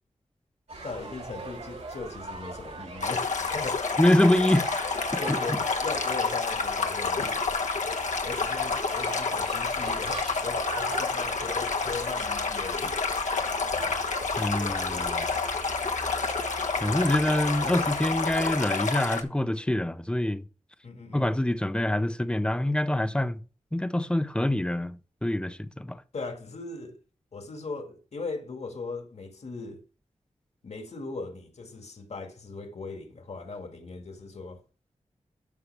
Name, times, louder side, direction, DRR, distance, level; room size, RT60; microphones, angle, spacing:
sound 1, 0.7-18.6, right 3 dB, 65° right, 3.1 m, -40 dB
voice 1, 0.8-3.9 5.2-7.4 8.2-13.0 20.8-21.4 26.1-27.0 27.3-29.8 30.6-34.6, left 3 dB, 65° left, 1.9 m, -38 dB
Stream, 3.0-19.2, left 4 dB, 80° left, 1.2 m, -29 dB
voice 2, 4.0-4.7 5.1-5.6 14.4-15.3 16.8-20.4 21.1-23.4 23.7-26.0, left 1 dB, 10° left, 0.6 m, -25 dB
13.0 x 5.6 x 3.4 m
wide cardioid pair, 120°, 12 cm